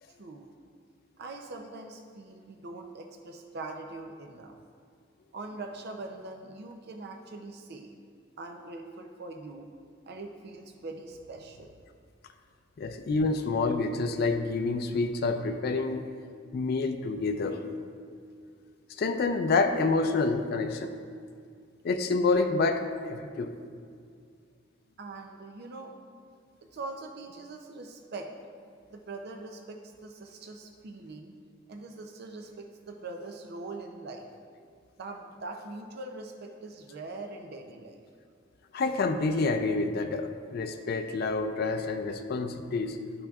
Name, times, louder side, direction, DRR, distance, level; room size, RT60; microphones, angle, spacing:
voice 1, 0.2-0.5 1.2-4.6 5.3-7.9 8.4-9.7 10.1-11.8 25.0-25.9 26.7-28.3 28.9-31.4 31.7-34.3 35.0-38.0, right 2 dB, 55° right, 4 dB, 0.5 m, -42 dB
voice 2, 12.8-16.0 16.5-17.6 19.0-21.0 21.8-23.6 38.7-43.0, left 3 dB, 55° left, 6 dB, 0.4 m, -28 dB
11.5 x 5.9 x 2.4 m, 2.2 s
head